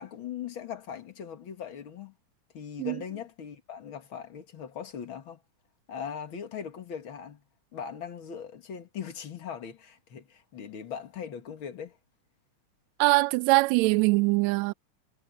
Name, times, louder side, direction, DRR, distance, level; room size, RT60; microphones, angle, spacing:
voice 1, 0.0-2.1 2.5-5.4 5.9-7.4 7.7-12.0, left 8 dB, 45° left, 2.2 m, -40 dB
voice 2, 13.0-14.7, right 24 dB, 80° right, 1.6 m, -22 dB
omnidirectional pair, 3.6 m